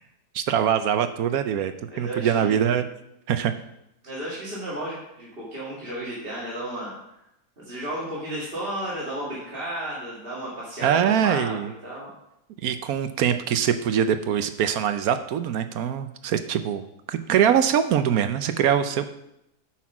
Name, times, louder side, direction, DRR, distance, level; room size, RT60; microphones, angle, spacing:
voice 1, 0.3-2.8 3.3-3.5 10.8-11.7 12.6-19.0, right 8 dB, 70° right, 9 dB, 1.0 m, -23 dB
voice 2, 1.9-2.6 4.0-6.9 7.6-11.6 11.8-12.1, right 1 dB, 35° right, -7 dB, 2.0 m, -33 dB
8.4 x 6.0 x 5.9 m, 0.81 s
omnidirectional pair, 1.8 m